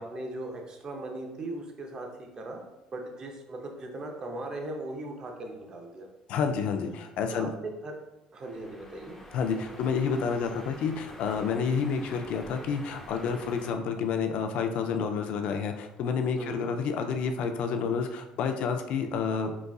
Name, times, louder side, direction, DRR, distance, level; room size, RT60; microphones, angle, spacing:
voice 1, 0.0-2.6 2.9-6.1 7.3-8.0 8.3-9.2 16.3-16.7, right 2 dB, 35° right, 2 dB, 0.6 m, -38 dB
voice 2, 6.3-7.5 9.3-19.5, left 6 dB, 70° left, 6 dB, 0.4 m, -29 dB
sound 1, 8.4-13.7, left 1 dB, 20° left, 0.5 m, -47 dB
3.9 x 2.4 x 2.3 m, 0.97 s
cardioid pair, 120°, 2 cm